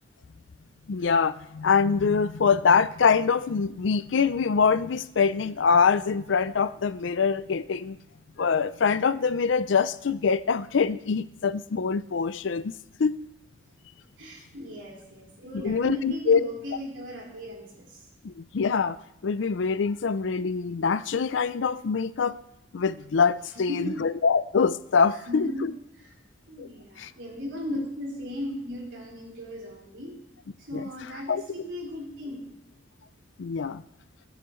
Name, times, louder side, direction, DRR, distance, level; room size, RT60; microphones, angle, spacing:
voice 1, 0.9-8.0 8.4-12.7 13.0-13.2 15.5-16.5 18.2-22.4 22.7-25.7 26.6-26.7 27.0-27.1 30.7-30.8 31.3-31.4 33.4-33.8, left 5 dB, 65° left, 15 dB, 0.4 m, -24 dB
voice 2, 14.2-18.1 23.5-24.0 25.3-26.1 26.5-30.2 30.6-32.5, left 1 dB, 65° right, -3 dB, 4.1 m, -37 dB
21.0 x 8.1 x 3.1 m, 0.77 s
head